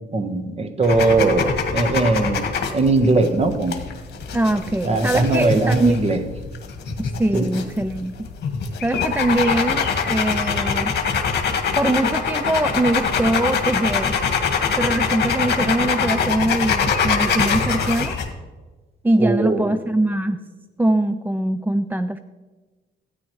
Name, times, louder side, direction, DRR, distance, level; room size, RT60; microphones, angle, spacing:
voice 1, 0.1-3.7 4.8-6.2 7.3-7.5 19.2-19.7, right 3 dB, 30° right, 8 dB, 1.1 m, -20 dB
sound 1, 0.8-18.3, left 6 dB, 55° left, 1.4 m, -24 dB
voice 2, 4.3-6.0 7.0-8.1 8.8-11.0 11.8-14.2 14.8-18.1 19.0-20.4 20.8-22.2, right 1 dB, 10° right, 11 dB, 0.3 m, -22 dB
13.0 x 9.8 x 3.1 m, 1.3 s
cardioid pair, 90°, 20 cm